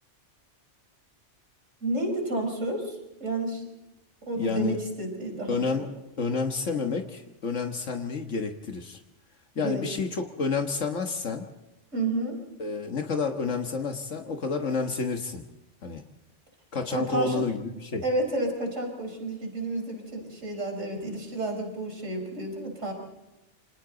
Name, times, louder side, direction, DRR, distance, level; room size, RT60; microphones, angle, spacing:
voice 1, 1.8-3.7 4.2-5.9 9.5-9.9 11.9-12.4 16.9-17.4 18.0-22.9, right 2 dB, 85° right, 2 dB, 5.1 m, -31 dB
voice 2, 4.4-4.8 5.5-5.9 6.2-9.0 9.6-11.5 12.6-15.4 15.8-16.0 16.7-18.0, left 4 dB, 80° left, 4 dB, 1.7 m, -29 dB
28.5 x 26.5 x 4.0 m, 0.98 s
omnidirectional pair, 1.2 m